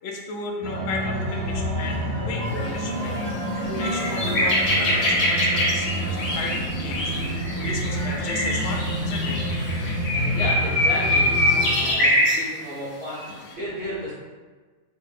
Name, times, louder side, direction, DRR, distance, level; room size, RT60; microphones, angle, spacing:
voice 1, 0.0-3.3 3.8-9.4 13.3-13.6, left 3 dB, 65° left, 0 dB, 0.7 m, -34 dB
sound 1, 0.6-11.9, equal, 65° right, 1.3 m, -28 dB
sound 2, 2.5-2.7 3.2-3.3 3.6-12.4 13.2-13.4, left 1 dB, 80° left, 1.2 m, -24 dB
voice 2, 10.1-13.2 13.5-14.1, equal, 50° right, -15 dB, 1.4 m, -33 dB
3.3 x 2.1 x 3.3 m, 1.4 s
omnidirectional pair, 1.4 m